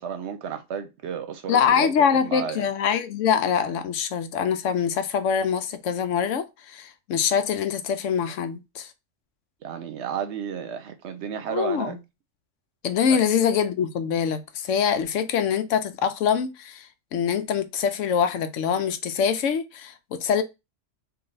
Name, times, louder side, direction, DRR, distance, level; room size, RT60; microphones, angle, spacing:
voice 1, 0.0-2.6 9.6-12.0 13.1-13.2, right 7 dB, 65° right, 0.9 m, -32 dB
voice 2, 1.5-8.9 11.5-12.0 12.8-20.4, left 7 dB, 85° left, 1.0 m, -24 dB
3.2 x 2.7 x 3.8 m
omnidirectional pair, 1.3 m